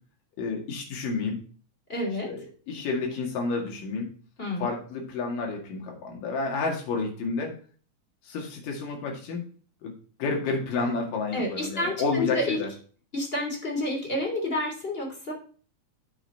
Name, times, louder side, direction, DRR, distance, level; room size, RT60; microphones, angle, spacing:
voice 1, 0.4-1.4 2.3-4.1 4.6-7.5 8.2-9.4 9.8-9.9 10.2-12.7, left 4 dB, 80° left, 0 dB, 3.7 m, -30 dB
voice 2, 1.9-2.3 4.4-4.7 11.3-12.6 13.1-15.3, left 1 dB, 15° left, 1 dB, 3.0 m, -29 dB
9.0 x 7.3 x 4.4 m, 0.42 s
omnidirectional pair, 3.8 m